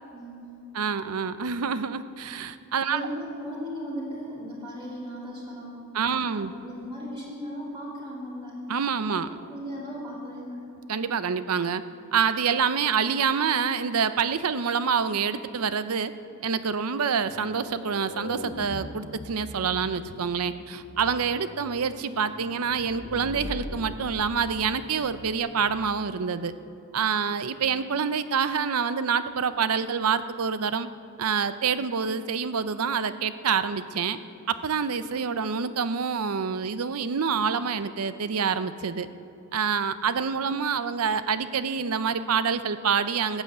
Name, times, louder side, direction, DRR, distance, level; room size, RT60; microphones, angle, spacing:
voice 1, 0.1-0.6 2.9-5.9 6.2-8.6 9.1-10.6, equal, 25° right, -6 dB, 3.0 m, -37 dB
voice 2, 0.7-3.0 5.9-6.5 8.7-9.3 10.9-11.8 12.1-16.1 16.4-26.5 26.9-30.9 31.2-34.2 34.5-39.1 39.5-43.4, right 6 dB, 85° right, 12 dB, 0.6 m, -27 dB
sound 1, 17.2-26.0, left 1 dB, 65° left, 1.1 m, -41 dB
15.0 x 9.0 x 8.0 m, 2.8 s
head